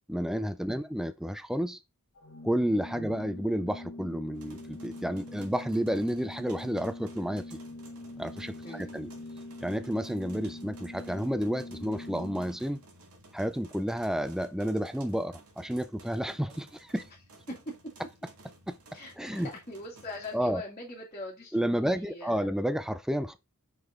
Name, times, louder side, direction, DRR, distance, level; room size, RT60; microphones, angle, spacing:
voice 1, 0.0-1.8 2.4-7.6 8.2-9.1 9.6-12.8 13.3-17.1 18.7-18.8 19.2-19.5 20.3-20.6 21.5-23.4, equal, ahead, 0.4 m, -31 dB
Organ, 2.1-12.9, left 2 dB, 65° left, 1.3 m, -44 dB
sound 1, 4.3-20.4, right 2 dB, 90° right, 2.1 m, -55 dB
voice 2, 8.6-8.9 17.5-17.9 18.9-22.5, left 1 dB, 30° left, 2.1 m, -42 dB
5.8 x 5.3 x 3.6 m
head